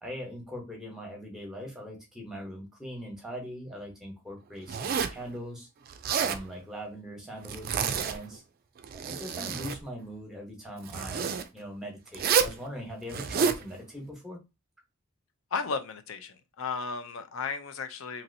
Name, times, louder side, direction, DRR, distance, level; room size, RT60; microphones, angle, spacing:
voice 1, 0.0-5.7 6.2-8.4 8.9-14.4, equal, ahead, 1.0 m, -41 dB
Zipper (clothing), 4.7-5.2 5.9-6.4 7.4-8.3 8.8-9.8 10.9-11.4 12.1-12.6 13.1-13.6, right 6 dB, 45° right, 0.3 m, -29 dB
voice 2, 15.5-18.2, left 5 dB, 70° left, 0.5 m, -34 dB
3.0 x 2.8 x 2.6 m
head